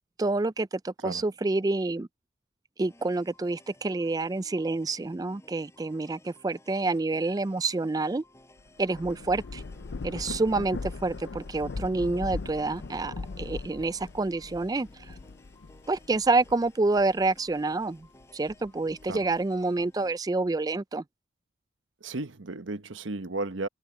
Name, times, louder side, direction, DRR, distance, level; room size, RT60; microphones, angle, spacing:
voice 1, 0.2-2.1 2.8-8.2 8.8-9.6 10.0-15.1 15.9-18.1 18.3-21.0, right 3 dB, 20° right, 0.3 m, -28 dB
sound 1, 2.9-20.1, left 1 dB, 15° left, 6.8 m, -57 dB
Thunder / Rain, 8.6-17.5 18.0-19.4, left 3 dB, 70° left, 0.6 m, -40 dB
voice 2, 22.0-23.7, right 2 dB, 85° right, 1.1 m, -34 dB
head